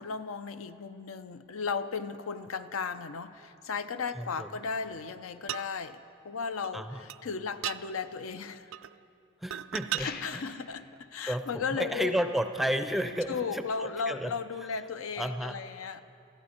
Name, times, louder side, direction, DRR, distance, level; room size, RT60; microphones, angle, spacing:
voice 1, 0.0-8.7 10.0-12.2 13.3-16.0, left 5 dB, 80° left, 11 dB, 0.6 m, -35 dB
voice 2, 4.2-4.5 6.7-7.0 9.4-10.1 10.3-10.5 11.2-14.3 15.2-15.5, equal, ahead, 8 dB, 0.4 m, -32 dB
sound 1, 5.5-5.7 6.6-6.7 7.1-7.2 7.6-7.8 8.7-9.0 9.5-10.1 11.0-11.1, right 12 dB, 75° right, 0.4 m, -35 dB
sound 2, 10.0-10.7, left 6 dB, 45° left, 0.7 m, -42 dB
23.0 x 14.0 x 4.3 m, 2.6 s
head